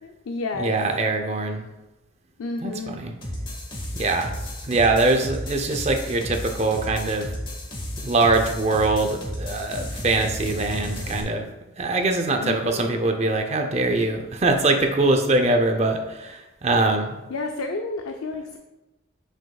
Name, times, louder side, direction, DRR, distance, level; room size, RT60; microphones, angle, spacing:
voice 1, 0.0-0.7 2.4-3.0 12.4-12.9 17.3-18.6, left 3 dB, 85° left, 4 dB, 0.5 m, -31 dB
voice 2, 0.6-1.6 2.6-3.1 3.9-4.3 4.6-7.3 8.0-11.5 11.8-17.2, right 2 dB, 30° right, 5 dB, 0.6 m, -23 dB
sound 1, 3.2-11.2, left 1 dB, 25° left, 1.0 m, -33 dB
7.6 x 6.3 x 2.3 m, 1.0 s
head